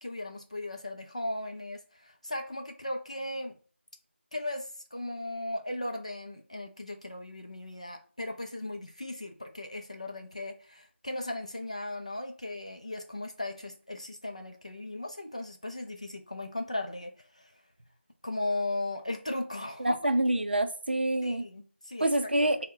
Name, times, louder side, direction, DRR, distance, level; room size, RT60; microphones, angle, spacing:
voice 1, 0.0-3.6 4.3-17.5 18.2-20.0 21.2-22.3, left 2 dB, 30° left, 0.4 m, -37 dB
voice 2, 19.8-21.4 22.0-22.7, right 1 dB, 55° right, 0.5 m, -26 dB
3.7 x 2.1 x 3.7 m
figure-of-eight pair, 175°, 7 cm